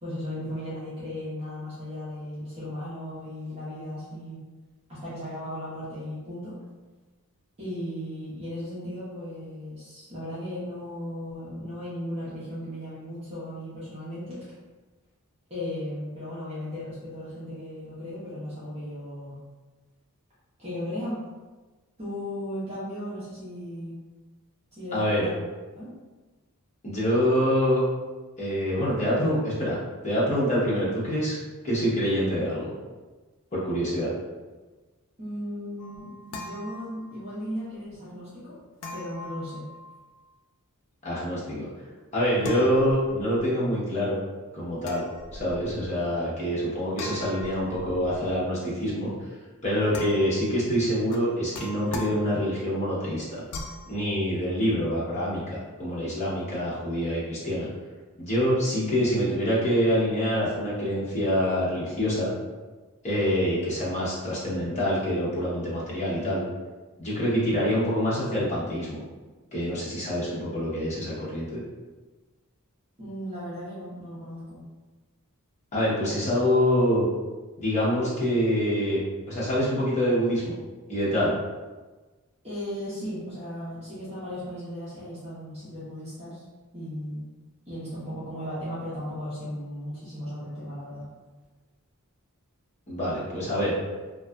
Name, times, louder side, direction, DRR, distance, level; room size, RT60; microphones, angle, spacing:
voice 1, 0.0-4.4 4.9-6.5 7.6-14.4 15.5-19.4 20.6-21.1 22.0-24.0 24.8-25.4 25.7-25.9 35.2-38.5 38.9-39.6 73.0-74.6 82.4-86.4 86.7-87.2 87.7-91.1, left 1 dB, 30° right, -11 dB, 0.8 m, -36 dB
voice 2, 24.9-25.3 26.8-27.8 28.4-29.8 30.0-31.4 31.6-32.7 33.5-34.1 41.0-41.7 42.1-44.2 44.5-45.0 45.3-49.1 49.6-53.4 53.9-57.7 58.2-62.3 63.0-66.4 67.0-69.0 69.5-71.6 75.7-77.0 77.6-80.5 80.9-81.3 92.9-93.7, equal, 30° left, -8 dB, 0.8 m, -26 dB
sound 1, 35.8-37.4 38.8-40.2 42.4-43.5 44.8-45.9 47.0-48.4 49.9-50.6 51.1-52.7 53.5-53.9, left 2 dB, 90° left, 0.3 m, -41 dB
2.6 x 2.4 x 2.2 m, 1.3 s
head